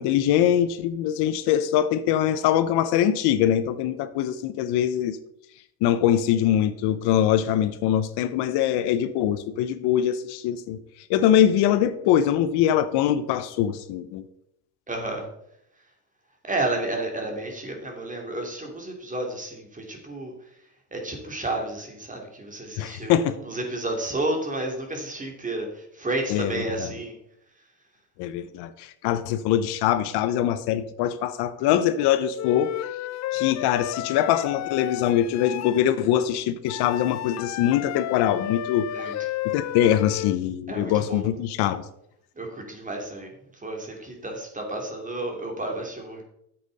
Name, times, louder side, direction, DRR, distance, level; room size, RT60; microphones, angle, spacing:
voice 1, 0.0-5.2 5.8-10.8 11.1-14.2 22.8-23.4 26.3-26.9 28.2-32.7 33.3-39.2 39.4-41.8, left 10 dB, 80° left, 13 dB, 0.8 m, -23 dB
voice 2, 14.9-15.2 16.4-20.3 20.9-27.1 38.9-39.1 40.7-41.2 42.4-43.3 43.6-46.2, right 2 dB, 20° right, 1 dB, 2.8 m, -31 dB
Wind instrument woodwind instrument, 32.4-35.9 36.7-40.4, left 13 dB, 45° left, 0.5 m, -32 dB
10.0 x 7.8 x 4.1 m, 0.77 s
cardioid pair, 100°, 39 cm